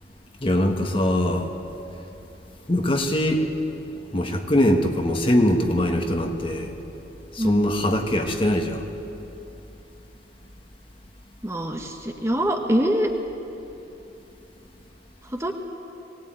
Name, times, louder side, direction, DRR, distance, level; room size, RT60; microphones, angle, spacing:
voice 1, 0.4-1.5 2.7-3.5 4.1-6.7 7.3-8.9, left 1 dB, 30° left, 4 dB, 1.5 m, -22 dB
voice 2, 11.4-13.1 15.2-15.5, equal, 15° right, 3 dB, 1.2 m, -24 dB
21.0 x 18.5 x 9.0 m, 2.9 s
head